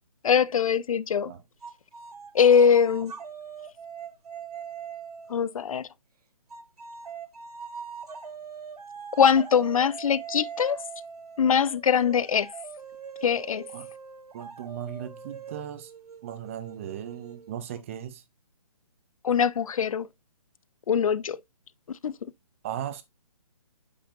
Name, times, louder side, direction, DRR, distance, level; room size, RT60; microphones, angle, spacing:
voice 1, 0.2-1.3 2.3-3.1 5.3-5.9 9.2-10.8 11.4-12.5 13.2-13.7 19.2-20.1 20.9-21.4 22.0-22.1, left 7 dB, 65° left, 0.5 m, -22 dB
happy bird raw, 1.6-5.5 6.5-17.8, right 7 dB, 85° right, 1.3 m, -42 dB
voice 2, 14.3-15.9 16.2-18.2 22.6-23.0, right 10 dB, 20° right, 0.6 m, -37 dB
8.8 x 5.2 x 2.5 m
hypercardioid pair, 160°, 19 cm